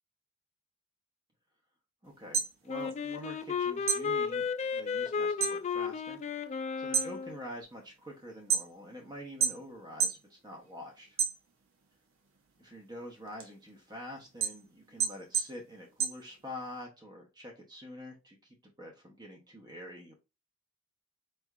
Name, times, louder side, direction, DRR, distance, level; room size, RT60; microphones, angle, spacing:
voice 1, 2.0-4.5 4.7-11.2 12.6-18.4 18.6-20.1, left 1 dB, 20° right, 0 dB, 0.8 m, -46 dB
sound 1, 2.1-3.5 3.8-5.6 6.0-6.4 6.8-9.0 9.4-10.3 10.6-11.8 12.3-16.8, right 7 dB, 75° right, 0.9 m, -32 dB
Wind instrument woodwind instrument, 2.7-7.4, left 5 dB, 35° left, 0.3 m, -33 dB
4.4 x 3.2 x 2.4 m, 0.27 s
head